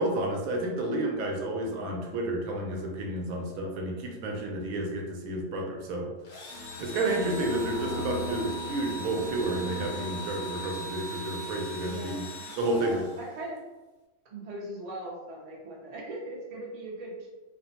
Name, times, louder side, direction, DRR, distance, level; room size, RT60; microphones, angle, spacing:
voice 1, 0.0-6.1 6.8-12.3 12.6-13.0, right 1 dB, 85° right, 1 dB, 1.0 m, -31 dB
Engine / Drill, 6.2-13.6, right 1 dB, 75° left, 0.4 m, -40 dB
sound 1, 6.5-11.1, left 2 dB, 5° right, 0.6 m, -39 dB
voice 2, 7.0-7.5 11.8-13.6 14.3-17.3, right 1 dB, 50° right, -3 dB, 0.5 m, -40 dB
2.4 x 2.1 x 2.8 m, 1.1 s
omnidirectional pair, 1.4 m